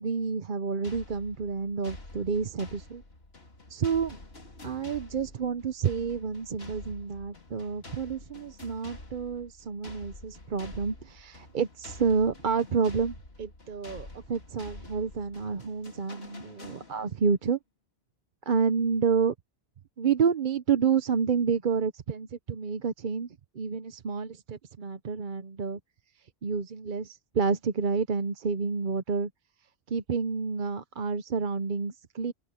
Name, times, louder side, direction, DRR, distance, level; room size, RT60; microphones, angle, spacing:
voice 1, 0.0-3.0 3.7-4.2 4.6-17.6 18.5-19.3 20.0-25.8 26.4-29.3 29.9-32.3, right 5 dB, 50° right, 0.9 m, -29 dB
sound 1, 0.8-17.3, left 2 dB, 65° left, 3.1 m, -48 dB
open air
omnidirectional pair, 1.1 m